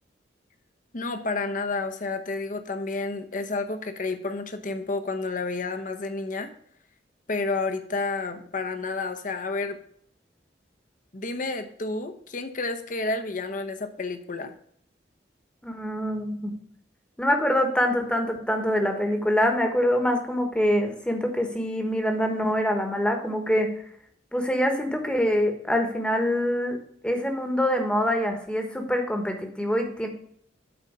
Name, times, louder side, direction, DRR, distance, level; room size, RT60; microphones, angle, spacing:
voice 1, 0.9-6.5 7.3-9.8 11.1-14.5, left 3 dB, 45° left, 8 dB, 0.8 m, -30 dB
voice 2, 15.6-16.5 17.2-23.7 24.3-26.8 27.0-30.1, equal, 5° left, 4 dB, 1.1 m, -25 dB
8.7 x 4.0 x 5.4 m, 0.64 s
head